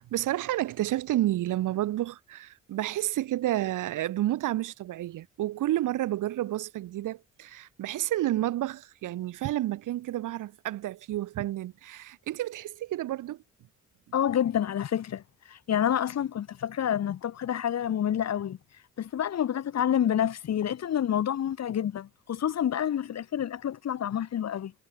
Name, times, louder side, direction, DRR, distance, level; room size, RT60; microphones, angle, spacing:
voice 1, 0.0-13.4, right 14 dB, 85° right, 3.0 m, -30 dB
voice 2, 14.1-18.6 19.0-24.7, left 10 dB, 60° left, 1.7 m, -28 dB
cardioid pair, 85°, 30 cm